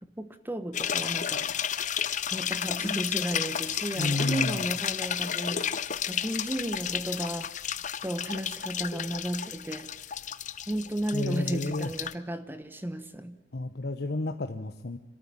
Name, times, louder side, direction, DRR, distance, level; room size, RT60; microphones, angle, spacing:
voice 1, 0.2-2.0 2.3-7.5 8.0-9.9 10.7-13.4, right 1 dB, 10° right, 1.0 m, -34 dB
sound 1, 0.7-12.1, left 9 dB, 40° left, 0.7 m, -32 dB
voice 2, 4.0-4.7 11.1-11.9 13.5-15.0, left 2 dB, 60° left, 1.0 m, -31 dB
26.5 x 13.5 x 8.9 m
head